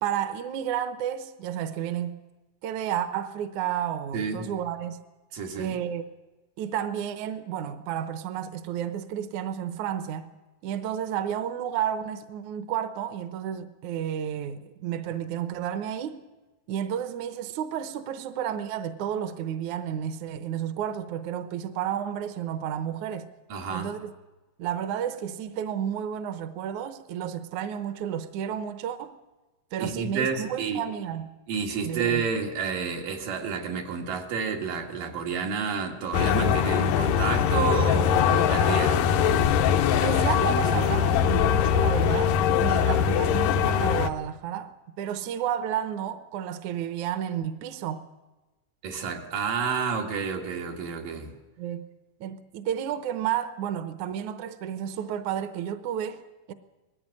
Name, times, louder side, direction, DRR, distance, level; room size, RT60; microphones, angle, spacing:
voice 1, 0.0-2.2 2.6-5.0 5.6-6.0 6.6-10.3 10.6-16.2 16.7-23.3 23.7-24.1 24.6-29.2 29.7-31.3 31.8-32.2 40.0-48.1 51.6-51.9 52.2-56.5, right 9 dB, 70° right, 2.2 m, -31 dB
voice 2, 4.1-4.5 5.3-5.8 23.5-23.9 29.8-30.8 31.5-39.1 42.7-43.0 48.8-51.3, right 6 dB, 90° right, 3.8 m, -30 dB
sound 1, 36.1-44.1, left 8 dB, 80° left, 2.5 m, -22 dB
20.0 x 15.5 x 9.7 m
omnidirectional pair, 3.7 m